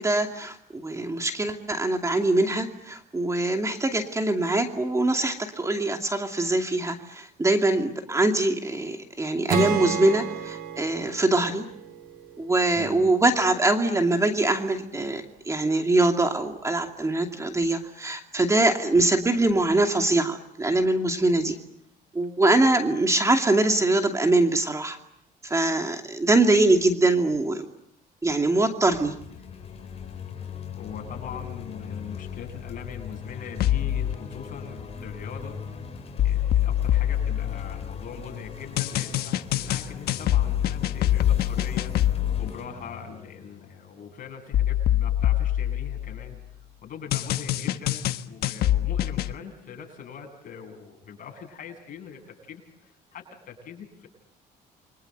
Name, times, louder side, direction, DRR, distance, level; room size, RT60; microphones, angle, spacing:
voice 1, 0.0-11.6 12.4-21.6 22.1-25.0 25.4-27.6 28.2-29.1, right 2 dB, 15° right, 4 dB, 2.6 m, -23 dB
Acoustic guitar / Strum, 9.5-12.9, right 5 dB, 65° right, 3.9 m, -31 dB
voice 2, 12.7-13.2 30.7-35.6 36.2-46.4 46.8-54.1, left 7 dB, 55° left, 3 dB, 8.0 m, -42 dB
sound 1, 28.9-44.3, left 6 dB, 35° left, 6.1 m, -40 dB
sound 2, 33.6-34.1 36.2-38.1 38.8-42.5 44.5-46.4 47.1-49.3, left 12 dB, 70° left, 1.3 m, -24 dB
29.5 x 24.5 x 8.1 m, 0.75 s
cardioid pair, 110°, 17 cm